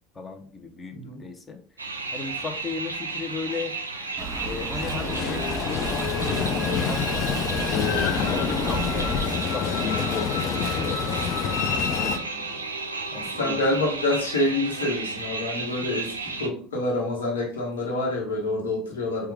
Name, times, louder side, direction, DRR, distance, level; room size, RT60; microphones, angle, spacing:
voice 1, 0.1-1.6 2.1-3.7 4.4-7.1 7.7-12.6 13.1-13.6, left 4 dB, 25° left, 6 dB, 0.8 m, -35 dB
sound 1, 1.8-16.5, right 3 dB, 85° right, 0.5 m, -33 dB
sound 2, 4.2-9.2, right 2 dB, 15° right, 1.2 m, -34 dB
Train, 4.8-12.2, left 7 dB, 50° left, 0.5 m, -27 dB
voice 2, 13.1-19.3, left 2 dB, 75° left, -2 dB, 1.1 m, -27 dB
4.4 x 2.3 x 3.5 m, 0.43 s
figure-of-eight pair, 65°, 0 cm